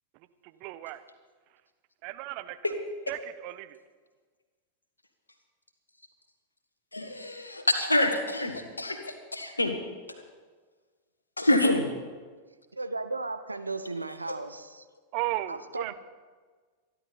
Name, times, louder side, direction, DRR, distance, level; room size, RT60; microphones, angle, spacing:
voice 1, 0.6-1.0 2.0-2.6 3.1-3.8 15.1-15.9, right 16 dB, 45° right, 12 dB, 0.8 m, -34 dB
voice 2, 6.9-9.8 11.4-11.9 14.3-14.4, left 1 dB, 80° left, 6 dB, 1.6 m, -26 dB
voice 3, 12.7-14.8 15.5-15.9, right 3 dB, 80° right, 9 dB, 0.8 m, -35 dB
24.5 x 11.0 x 4.1 m, 1.5 s
figure-of-eight pair, 90°, 0 cm